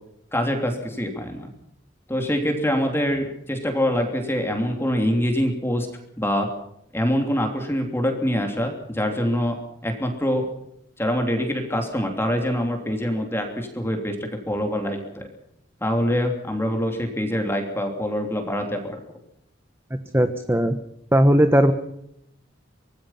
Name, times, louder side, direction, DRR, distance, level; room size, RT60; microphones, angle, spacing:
voice 1, 0.3-1.5 2.1-5.9 6.2-6.5 6.9-9.6 9.8-10.5 11.0-15.3 15.8-19.0, equal, 15° left, 4 dB, 3.2 m, -25 dB
voice 2, 20.1-20.7 21.1-21.7, equal, 15° right, 8 dB, 1.2 m, -17 dB
25.0 x 19.0 x 5.8 m, 0.75 s
head